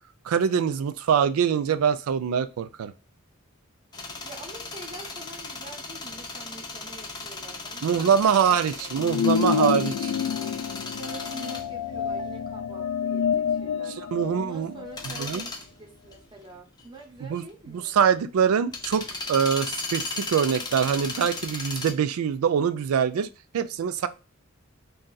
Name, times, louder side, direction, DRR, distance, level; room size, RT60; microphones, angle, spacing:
voice 1, 0.3-2.9 7.8-10.1 14.1-14.7 15.0-15.4 17.2-17.4 17.7-23.3 23.5-24.1, right 7 dB, 85° right, 13 dB, 0.3 m, -24 dB
sound 1, 3.9-21.9, left 3 dB, 20° left, 0.5 m, -37 dB
voice 2, 4.2-8.2 8.4-9.0 11.0-14.0 14.4-18.0, right 3 dB, 20° right, 1 dB, 0.8 m, -46 dB
sound 2, 9.0-15.1, left 7 dB, 85° left, 0.4 m, -28 dB
2.6 x 2.3 x 3.8 m, 0.31 s
head